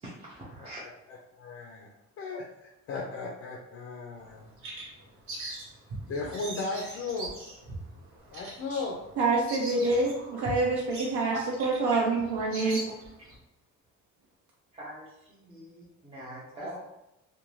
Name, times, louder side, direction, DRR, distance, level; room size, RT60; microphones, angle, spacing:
voice 1, 0.0-0.8 12.6-12.7 14.7-15.0 15.4-16.8, right 1 dB, 20° right, -7 dB, 0.4 m, -43 dB
voice 2, 0.6-1.9 2.2-4.5 5.5-5.6 6.1-7.3 8.3-9.0 16.5-16.8, left 3 dB, 50° left, -1 dB, 0.4 m, -36 dB
Bird vocalization bird call bird song, 4.2-13.4, right 2 dB, 45° right, 0.8 m, -42 dB
voice 3, 9.2-12.8, right 3 dB, 75° right, -3 dB, 0.6 m, -27 dB
2.5 x 2.2 x 3.0 m, 0.91 s
cardioid pair, 160°, 30 cm